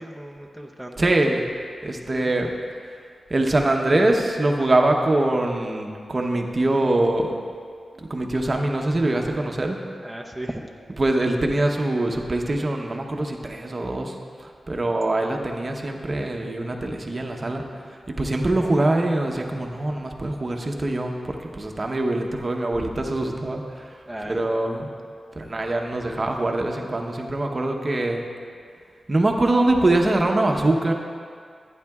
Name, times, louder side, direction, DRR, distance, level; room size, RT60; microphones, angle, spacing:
voice 1, 0.0-1.1 2.1-2.3 10.0-10.6 22.8-22.9 24.1-24.5, right 1 dB, 5° right, 0 dB, 0.7 m, -35 dB
voice 2, 1.0-1.4 1.8-2.5 3.3-7.3 8.0-9.8 11.0-17.6 17.9-24.9 25.3-28.2 29.1-30.9, right 2 dB, 35° right, 2 dB, 0.9 m, -23 dB
14.5 x 9.4 x 2.4 m, 2.1 s
wide cardioid pair, 85°, 0 cm